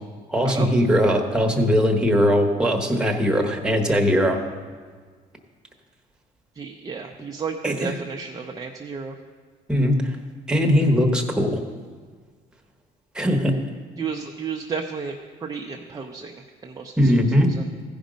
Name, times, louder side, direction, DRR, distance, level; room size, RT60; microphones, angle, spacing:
voice 1, 0.3-4.4 7.6-7.9 9.7-10.1 10.5-11.6 13.1-13.6 17.0-17.5, equal, 5° right, 2 dB, 1.2 m, -20 dB
voice 2, 6.6-9.2 14.0-15.2 15.4-17.7, right 5 dB, 20° right, 1 dB, 0.6 m, -32 dB
15.5 x 5.2 x 5.1 m, 1.6 s
cardioid pair, 110°, 17 cm